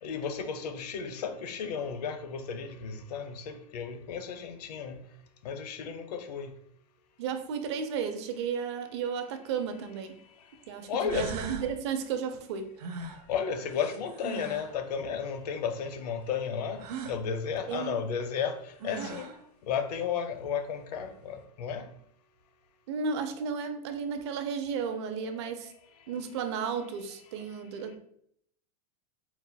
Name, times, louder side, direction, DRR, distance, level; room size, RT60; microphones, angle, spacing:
voice 1, 0.0-5.0 5.4-6.5 10.9-11.3 13.3-18.6 18.8-19.3 19.7-21.9 25.2-25.3, left 7 dB, 85° left, 0.6 m, -33 dB
voice 2, 7.2-10.1 10.7-12.6 17.7-18.0 19.0-19.1 22.9-25.7 26.1-28.0, right 6 dB, 45° right, 0.5 m, -33 dB
sound 1, 9.6-9.7 10.6-10.7 11.1-11.7 12.8-14.7 16.8-17.2 18.4-18.5 18.8-19.4, right 4 dB, 90° right, 0.8 m, -40 dB
4.0 x 3.9 x 2.2 m
supercardioid pair, 175°, 20 cm